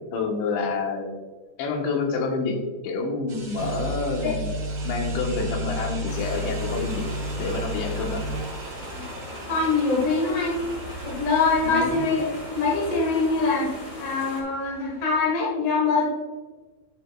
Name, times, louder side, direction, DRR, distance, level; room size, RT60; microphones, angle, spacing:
voice 1, 0.1-1.1 1.6-2.6 2.8-4.5 4.8-7.1 7.4-8.2 11.6-12.0, left 4 dB, 85° left, 2 dB, 3.5 m, -28 dB
sound 1, 3.3-15.3, right 2 dB, 35° right, 2.3 m, -41 dB
sound 2, 3.6-9.0, equal, 75° right, 3.1 m, -31 dB
sound 3, 6.1-14.4, equal, 40° left, 1.1 m, -40 dB
voice 2, 9.5-10.6 11.0-12.2 12.5-13.7 14.0-16.1, left 4 dB, 60° left, -3 dB, 1.6 m, -23 dB
10.5 x 8.1 x 2.3 m, 1.3 s
omnidirectional pair, 4.9 m